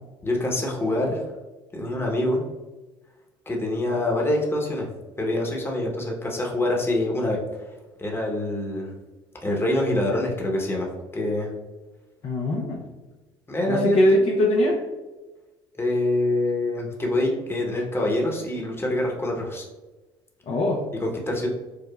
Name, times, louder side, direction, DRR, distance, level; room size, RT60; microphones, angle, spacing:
voice 1, 0.2-1.2 1.7-2.4 3.5-4.9 5.2-7.4 8.0-9.0 9.4-11.5 13.5-14.2 15.8-19.6 21.0-21.5, left 1 dB, 20° left, -1 dB, 0.9 m, -25 dB
voice 2, 12.2-12.8 13.7-14.8 20.5-20.8, left 1 dB, 50° left, -1 dB, 0.5 m, -21 dB
4.9 x 2.1 x 2.3 m, 1.2 s
hypercardioid pair, 60°, 13 cm